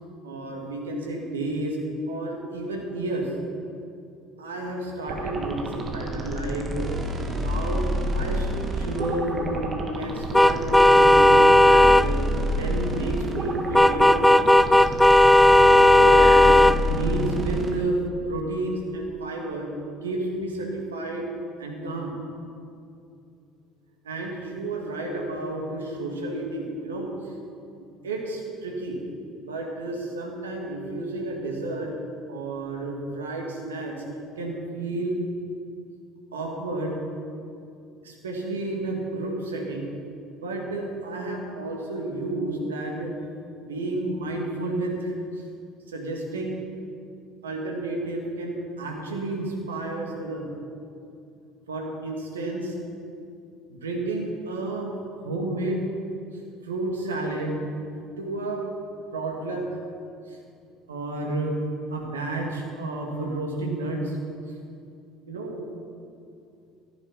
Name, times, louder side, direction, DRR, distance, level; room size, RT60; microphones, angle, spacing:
voice 1, 0.2-1.8 2.1-3.3 4.4-6.9 7.4-8.5 8.7-9.7 10.0-12.2 12.6-14.4 14.8-14.9 15.9-16.6 16.9-18.0 18.3-19.7 20.0-21.3 21.6-22.1 24.0-27.3 27.7-29.0 29.5-32.0 32.3-34.0 34.4-35.2 36.3-37.0 38.0-39.9 40.4-43.3 43.7-45.4 45.9-46.6 47.4-50.5 51.7-52.7 53.7-54.9 55.2-55.8 56.6-57.6 58.2-58.6 59.1-59.8 60.3-60.4 60.9-61.6 61.9-64.2 65.3-65.6, right 2 dB, 80° right, 0 dB, 2.2 m, -31 dB
sound 1, 5.0-17.7, equal, 30° right, 2.0 m, -29 dB
sound 2, 10.3-12.1 13.7-16.8, left 1 dB, 5° left, 0.4 m, -15 dB
14.0 x 10.5 x 5.7 m, 2.5 s
figure-of-eight pair, 60°, 0 cm